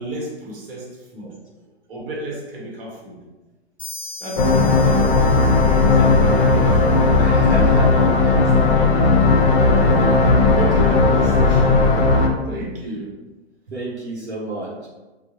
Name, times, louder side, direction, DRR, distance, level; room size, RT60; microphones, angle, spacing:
voice 1, 0.0-1.4 1.9-3.2 4.2-5.5 6.0-6.8 7.3-8.9 10.0-12.0 12.5-13.1, right 1 dB, 55° right, -3 dB, 1.1 m, -33 dB
sound 1, 3.8-7.4, left 2 dB, 5° left, 0.5 m, -39 dB
sound 2, 4.4-12.3, left 3 dB, 50° left, 0.6 m, -15 dB
voice 2, 7.2-7.9 8.2-8.4 13.7-14.9, right 2 dB, 85° right, -5 dB, 0.9 m, -31 dB
3.5 x 2.1 x 2.8 m, 1.1 s
figure-of-eight pair, 115°, 33 cm